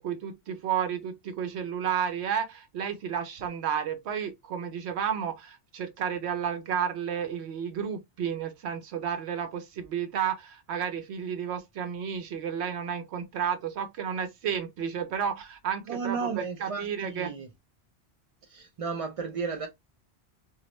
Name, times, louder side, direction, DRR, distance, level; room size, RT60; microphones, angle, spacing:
voice 1, 0.0-17.3, right 8 dB, 80° right, 0.9 m, -32 dB
voice 2, 15.9-17.5 18.4-19.7, right 5 dB, 55° right, 0.3 m, -33 dB
2.9 x 2.6 x 3.0 m
omnidirectional pair, 1.1 m